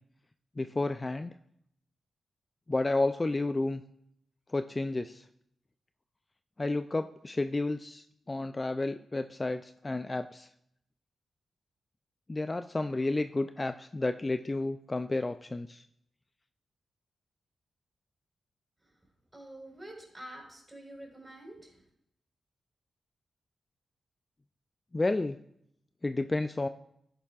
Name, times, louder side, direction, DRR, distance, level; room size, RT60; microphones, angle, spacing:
voice 1, 0.6-1.3 2.7-3.8 4.5-5.2 6.6-10.5 12.3-15.8 24.9-25.4 26.0-26.7, left 2 dB, 30° left, 10 dB, 0.4 m, -31 dB
voice 2, 19.3-21.8, right 1 dB, 20° right, 0 dB, 4.4 m, -47 dB
12.0 x 10.0 x 2.4 m, 0.73 s
cardioid pair, 55°, 0 cm